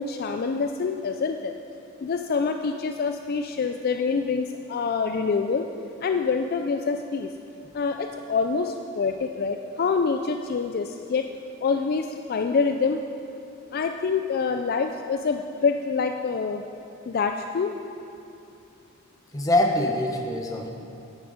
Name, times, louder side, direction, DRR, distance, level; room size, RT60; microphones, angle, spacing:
voice 1, 0.0-1.5 2.0-5.7 6.0-7.3 7.7-11.3 11.6-13.0 13.7-16.6 17.1-17.7, left 5 dB, 50° left, 6 dB, 0.4 m, -26 dB
voice 2, 19.3-20.7, left 1 dB, 15° left, 1 dB, 1.0 m, -23 dB
11.0 x 9.5 x 4.9 m, 2.8 s
head